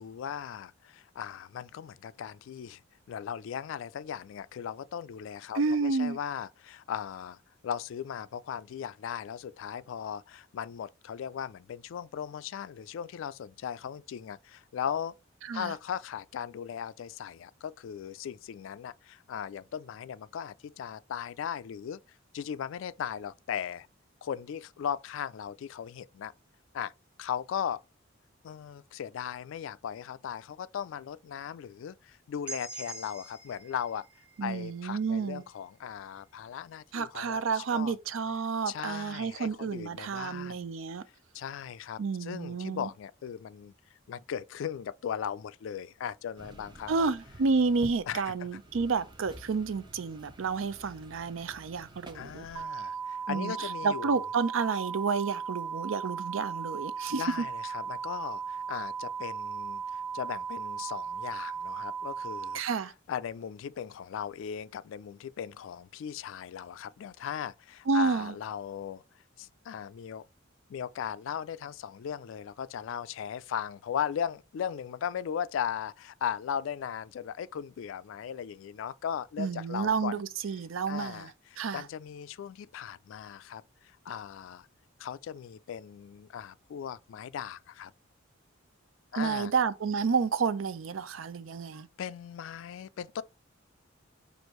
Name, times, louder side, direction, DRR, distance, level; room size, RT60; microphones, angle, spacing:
voice 1, 0.0-2.8 3.1-7.4 7.6-15.1 15.5-22.0 22.3-23.9 24.2-26.3 26.7-26.9 27.2-27.8 28.4-34.1 34.4-38.0 38.7-40.7 41.3-43.7 44.1-47.1 48.1-48.5 52.1-54.2 57.1-62.6 63.1-69.0 69.4-70.3 70.7-80.2 80.9-84.7 85.0-87.9 89.1-89.5 92.0-93.2, left 8 dB, 70° left, 0.3 m, -38 dB
voice 2, 5.5-6.2 15.5-15.7 34.4-35.4 36.9-41.0 42.0-42.9 46.9-52.5 53.3-57.2 62.5-62.9 67.9-68.3 79.4-81.3 81.6-81.8 89.1-91.9, right 4 dB, 75° right, 0.5 m, -30 dB
sound 1, 32.5-36.3, right 3 dB, 10° right, 1.1 m, -46 dB
sound 2, 46.4-52.7, right 1 dB, 25° right, 0.6 m, -50 dB
sound 3, 52.6-62.6, right 6 dB, 40° right, 1.0 m, -37 dB
6.1 x 2.6 x 3.0 m
head